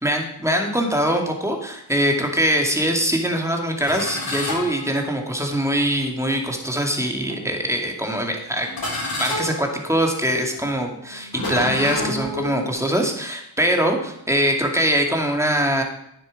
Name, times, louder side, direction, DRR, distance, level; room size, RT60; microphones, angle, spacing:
voice 1, 0.0-8.7 9.2-15.8, equal, 5° right, 2 dB, 2.3 m, -22 dB
sound 1, 3.9-5.5 6.3-6.5 7.3-7.8 8.6-12.7, left 1 dB, 50° left, 3.9 m, -30 dB
9.5 x 7.7 x 5.1 m, 0.77 s
cardioid pair, 55°, 45 cm